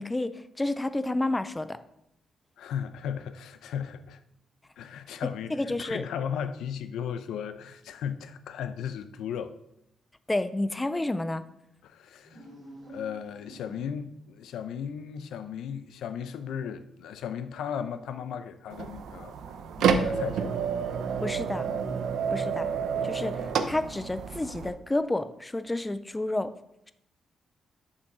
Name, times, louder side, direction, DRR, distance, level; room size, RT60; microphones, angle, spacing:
voice 1, 0.0-1.8 5.5-6.0 10.3-11.4 21.2-21.7 22.3-22.7 23.0-26.5, left 2 dB, 10° left, 0.4 m, -30 dB
voice 2, 2.6-4.2 4.8-9.5 11.8-12.4 12.9-20.5, left 8 dB, 85° left, 0.6 m, -36 dB
sound 1, 12.2-14.2, right 1 dB, 30° right, 3.2 m, -48 dB
sound 2, 18.7-24.7, right 6 dB, 70° right, 0.6 m, -29 dB
7.0 x 5.4 x 5.5 m
cardioid pair, 180°, 0 cm